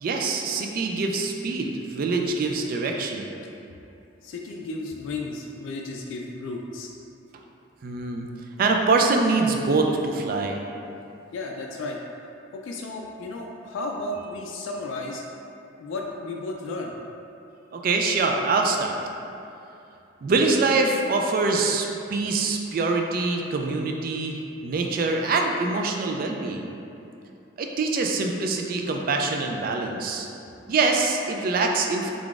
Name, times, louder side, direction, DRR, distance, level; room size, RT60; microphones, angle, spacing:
voice 1, 0.0-3.3 7.8-8.3 8.6-10.6 17.7-18.9 20.2-26.7 27.6-30.3 30.7-32.1, right 3 dB, 45° right, 2 dB, 0.3 m, -24 dB
voice 2, 4.2-6.9 11.3-12.0 12.5-15.2 15.8-17.0, left 2 dB, 75° left, 0 dB, 0.3 m, -33 dB
3.7 x 3.5 x 2.4 m, 2.7 s
head